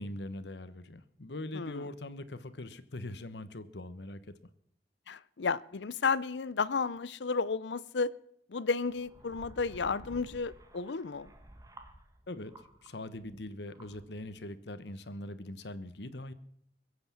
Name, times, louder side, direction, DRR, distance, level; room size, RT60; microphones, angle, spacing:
voice 1, 0.0-4.3 12.3-12.5 12.8-16.3, left 1 dB, 75° left, 1.1 m, -42 dB
voice 2, 5.1-8.1 8.5-11.3, left 4 dB, 90° left, 0.6 m, -32 dB
sound 1, 8.9-12.9 13.2-14.4, right 1 dB, 20° right, 1.6 m, -53 dB
22.0 x 8.0 x 7.2 m
head